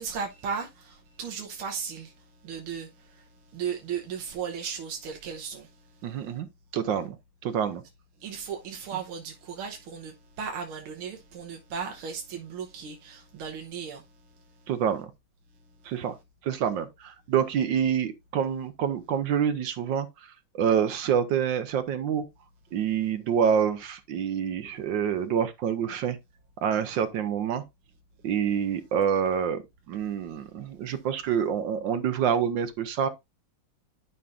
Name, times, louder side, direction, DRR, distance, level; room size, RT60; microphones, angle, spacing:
voice 1, 0.0-2.1 2.4-3.2 3.5-5.7 8.2-14.0, right 6 dB, 90° right, 1.9 m, -36 dB
voice 2, 6.0-6.5 6.7-7.2 7.4-7.8 14.7-15.1 15.8-16.2 16.4-22.3 22.7-26.2 26.6-27.6 28.2-29.6 29.9-33.1, right 8 dB, 70° right, 1.3 m, -27 dB
11.0 x 5.4 x 2.5 m
omnidirectional pair, 2.2 m